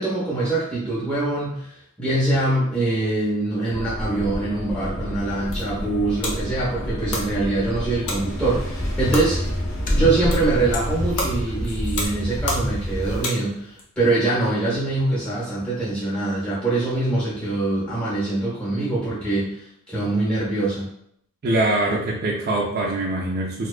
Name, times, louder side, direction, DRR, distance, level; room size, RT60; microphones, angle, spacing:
voice 1, 0.0-1.7 2.0-9.4 9.9-20.9, right 2 dB, 5° left, -10 dB, 0.7 m, -24 dB
sound 1, 3.7-12.1, equal, 40° left, 0.3 m, -29 dB
sound 2, 5.2-13.8, left 2 dB, 90° left, 0.7 m, -34 dB
sound 3, 8.2-13.3, equal, 60° left, 0.9 m, -29 dB
voice 2, 21.4-23.7, right 2 dB, 45° right, -3 dB, 0.3 m, -23 dB
2.4 x 2.1 x 2.4 m, 0.70 s
head